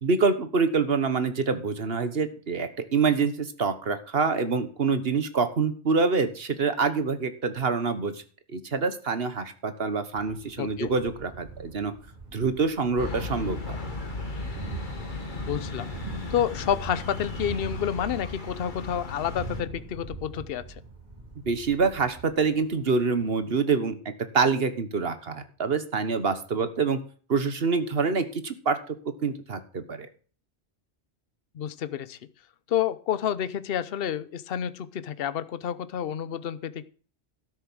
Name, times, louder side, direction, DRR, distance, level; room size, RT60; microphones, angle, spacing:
voice 1, 0.0-8.2 8.5-11.9 12.3-13.8 21.4-24.0 24.3-27.0 27.3-29.0 29.2-30.1, right 4 dB, 60° right, 11 dB, 1.5 m, -26 dB
Thunder, 10.1-23.5, right 3 dB, 40° right, 4.6 m, -43 dB
voice 2, 10.6-10.9 15.4-15.9 16.3-20.8 31.5-32.2 32.7-36.8, left 9 dB, 60° left, 15 dB, 0.9 m, -29 dB
sound 1, 13.0-19.6, left 3 dB, 45° left, 2.1 m, -36 dB
12.5 x 6.9 x 6.3 m, 0.41 s
omnidirectional pair, 1.1 m